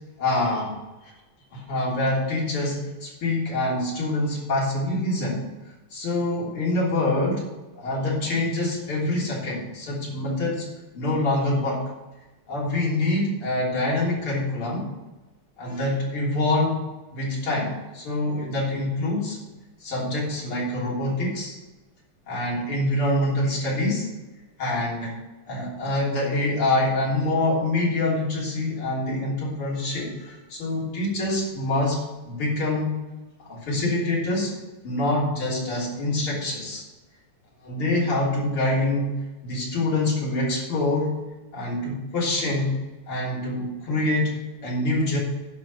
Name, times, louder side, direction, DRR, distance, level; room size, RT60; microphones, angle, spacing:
voice 1, 0.2-0.7 1.5-5.4 5.9-7.4 7.8-10.7 10.9-11.8 12.5-14.8 15.6-16.8 17.1-19.4 19.8-21.6 22.3-24.1 24.6-25.1 25.5-32.9 33.4-34.5 34.8-36.8 37.6-39.1 39.4-41.2 41.5-42.7 43.1-45.2, left 2 dB, 80° left, -5 dB, 4.2 m, -25 dB
11.0 x 5.9 x 6.8 m, 1.1 s
omnidirectional pair, 2.4 m